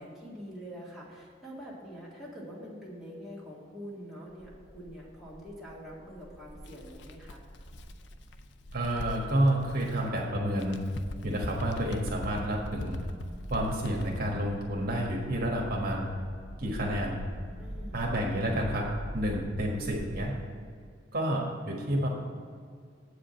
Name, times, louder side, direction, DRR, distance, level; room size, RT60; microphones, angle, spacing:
voice 1, 0.0-7.4 17.6-18.0, equal, ahead, -7 dB, 2.0 m, -45 dB
sound 1, 4.3-20.2, equal, 40° left, 1.8 m, -44 dB
Bird, 6.6-10.1 10.5-14.4, left 2 dB, 70° left, 0.5 m, -42 dB
voice 2, 8.7-10.8 11.2-13.0 13.5-16.1 16.6-17.2 17.9-18.9 19.1-20.3 21.1-22.1, right 1 dB, 55° right, -1 dB, 1.4 m, -29 dB
8.0 x 5.1 x 7.6 m, 2.1 s
head